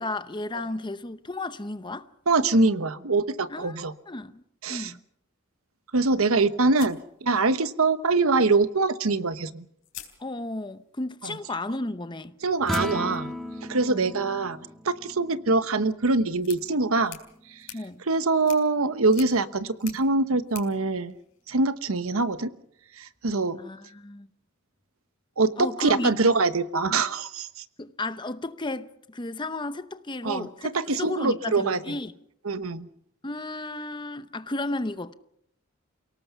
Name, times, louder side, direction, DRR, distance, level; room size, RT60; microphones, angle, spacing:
voice 1, 0.0-2.1 3.5-4.4 4.7-5.0 10.2-12.4 13.9-14.1 17.7-18.0 23.6-24.3 25.6-26.1 27.8-32.1 33.2-35.1, left 2 dB, 20° left, 0.8 m, -33 dB
voice 2, 2.3-3.9 4.6-4.9 5.9-9.6 11.2-11.4 12.4-13.3 13.7-14.6 14.8-17.2 18.1-21.1 21.5-22.5 23.0-23.6 25.4-27.5 30.2-30.5 30.7-31.8 32.4-32.9, right 3 dB, 80° right, 1.1 m, -24 dB
sound 1, 6.7-7.9 9.2-9.3 9.8-10.8 12.6-21.8, left 12 dB, 60° left, 3.9 m, -48 dB
sound 2, 12.6-19.0, equal, ahead, 1.7 m, -38 dB
29.0 x 18.0 x 5.7 m
head